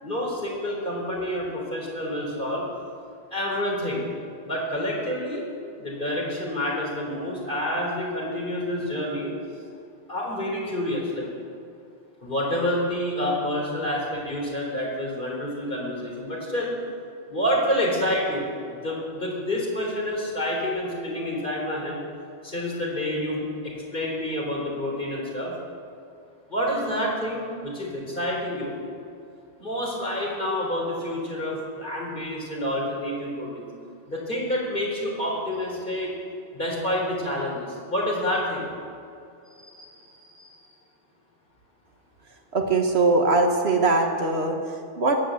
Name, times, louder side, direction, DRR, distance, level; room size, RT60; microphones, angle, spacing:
voice 1, 0.0-2.6 3.3-4.0 4.4-5.4 5.8-9.3 10.1-11.3 12.2-16.7 17.3-22.0 22.4-25.5 26.5-28.8 29.6-33.7 34.1-36.1 36.5-38.6 39.6-40.7, left 1 dB, 45° left, -3 dB, 4.0 m, -28 dB
voice 2, 42.5-45.2, right 3 dB, 65° right, 3 dB, 1.7 m, -22 dB
16.0 x 10.0 x 7.8 m, 2.5 s
omnidirectional pair, 1.2 m